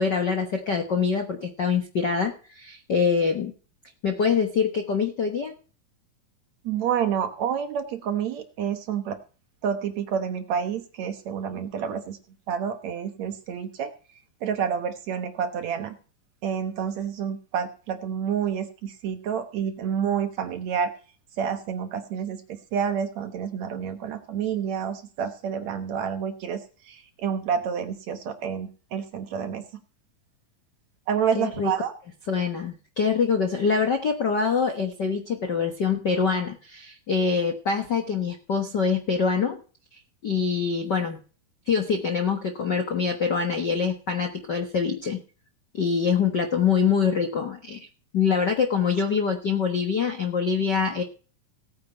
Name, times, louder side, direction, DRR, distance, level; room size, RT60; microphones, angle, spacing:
voice 1, 0.0-3.5 4.0-5.5 31.3-31.7 32.3-39.6 40.2-41.2 41.7-45.2 45.7-47.8 48.1-51.0, left 6 dB, 55° left, 4 dB, 1.1 m, -24 dB
voice 2, 6.6-9.2 9.6-12.2 12.5-13.9 14.4-15.9 16.4-20.9 21.4-29.6 31.1-31.9, right 7 dB, 65° right, 8 dB, 2.1 m, -29 dB
17.0 x 9.3 x 4.5 m, 0.38 s
omnidirectional pair, 4.0 m